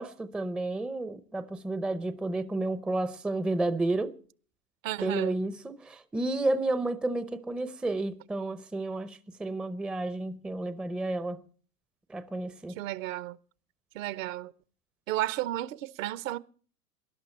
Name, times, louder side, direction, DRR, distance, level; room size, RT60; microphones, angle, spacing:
voice 1, 0.0-4.2 5.0-11.4 12.1-12.8, right 2 dB, ahead, 0.6 m, -31 dB
voice 2, 4.8-5.4 12.8-13.4 13.9-14.5 15.1-16.4, right 15 dB, 60° right, 0.9 m, -33 dB
20.0 x 11.5 x 4.3 m
hypercardioid pair, 110°, 46 cm